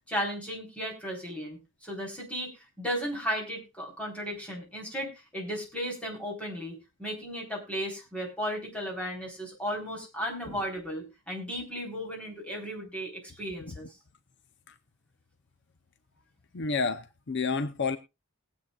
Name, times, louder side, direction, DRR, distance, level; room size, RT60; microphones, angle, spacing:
voice 1, 0.1-2.5 2.8-13.8, equal, 5° left, 3.8 m, -35 dB
voice 2, 16.5-18.0, left 4 dB, 55° left, 0.6 m, -30 dB
21.0 x 8.2 x 2.3 m
head